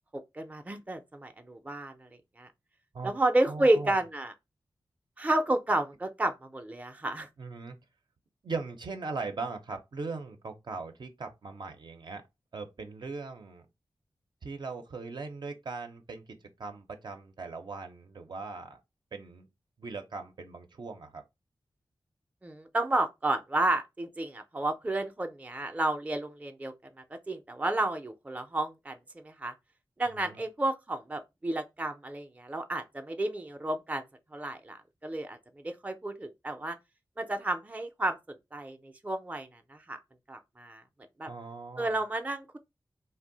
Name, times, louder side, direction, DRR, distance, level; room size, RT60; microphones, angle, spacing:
voice 1, 0.1-2.1 2.4-2.5 3.0-4.3 5.2-7.3 22.4-26.7 27.3-29.5 30.0-34.0 34.3-35.4 35.6-36.8 37.2-40.0 40.3-40.8 41.2-41.3 41.8-42.6, right 2 dB, 20° right, 0.4 m, -31 dB
voice 2, 3.5-4.0 7.4-7.8 8.4-12.2 12.5-13.6 14.4-18.8 19.1-19.5 19.8-21.2 30.2-30.4 41.3-42.0, right 4 dB, 60° right, 0.5 m, -39 dB
2.6 x 2.0 x 3.8 m
cardioid pair, 55°, 8 cm